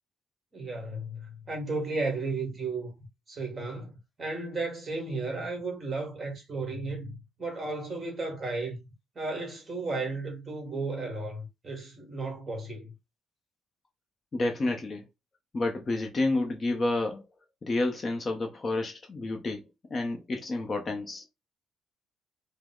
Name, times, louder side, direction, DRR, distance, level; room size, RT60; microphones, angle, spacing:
voice 1, 0.5-3.9 4.2-8.8 9.1-12.9, right 3 dB, 25° right, 1.6 m, -34 dB
voice 2, 14.3-15.0 15.5-17.2 17.6-21.2, left 2 dB, 25° left, 0.7 m, -30 dB
5.0 x 2.0 x 3.7 m
cardioid pair, 160°, 0 cm